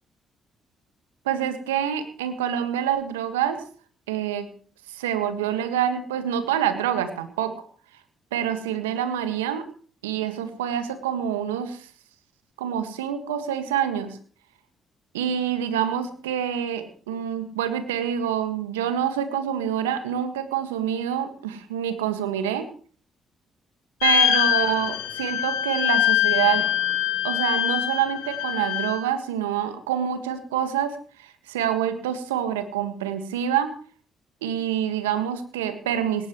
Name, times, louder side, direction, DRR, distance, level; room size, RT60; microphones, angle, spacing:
voice 1, 1.2-3.6 4.1-4.5 4.9-7.5 8.3-9.7 10.0-11.9 12.6-14.2 15.1-22.7 24.0-26.7 27.2-33.7 34.4-36.3, right 9 dB, 90° right, 9 dB, 1.7 m, -26 dB
sound 1, 24.0-29.0, left 12 dB, 80° left, 2.3 m, -23 dB
19.0 x 18.5 x 3.1 m, 0.42 s
hypercardioid pair, 45°, 0 cm